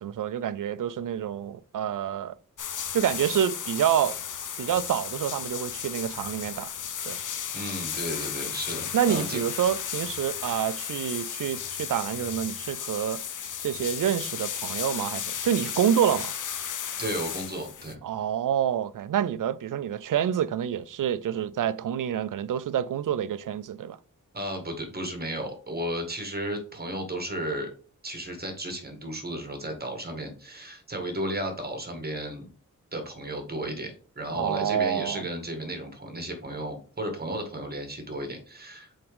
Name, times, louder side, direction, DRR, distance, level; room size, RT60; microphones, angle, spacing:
voice 1, 0.0-2.4 2.9-4.2 4.6-6.7 7.0-7.2 8.9-13.2 13.6-16.3 18.0-24.0 34.3-35.3, right 9 dB, 80° right, 0.5 m, -27 dB
sound 1, 2.6-17.9, left 8 dB, 75° left, 0.7 m, -34 dB
voice 2, 7.5-9.4 17.0-18.0 24.3-27.7 28.0-32.5 32.9-39.0, right 1 dB, 30° right, 1.8 m, -34 dB
7.8 x 3.6 x 3.5 m
wide cardioid pair, 95°, 31 cm